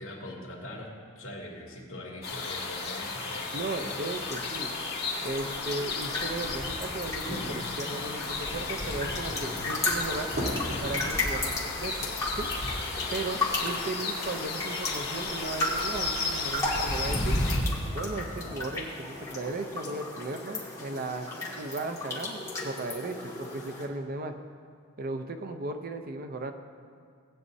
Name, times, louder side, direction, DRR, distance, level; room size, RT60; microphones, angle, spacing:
voice 1, 0.0-4.1, left 1 dB, 65° left, -2 dB, 2.4 m, -42 dB
sound 1, 2.2-17.6, left 3 dB, 45° left, 2.0 m, -33 dB
voice 2, 3.5-4.7 5.2-10.3 10.8-12.5 13.1-17.4 17.9-21.3 21.6-24.3 25.0-26.5, right 2 dB, 40° right, 6 dB, 0.6 m, -36 dB
sound 2, 4.3-23.9, left 2 dB, 15° left, 2.1 m, -36 dB
sound 3, 6.4-11.4, equal, 80° right, 3.2 m, -39 dB
18.5 x 9.3 x 2.7 m, 2.2 s
head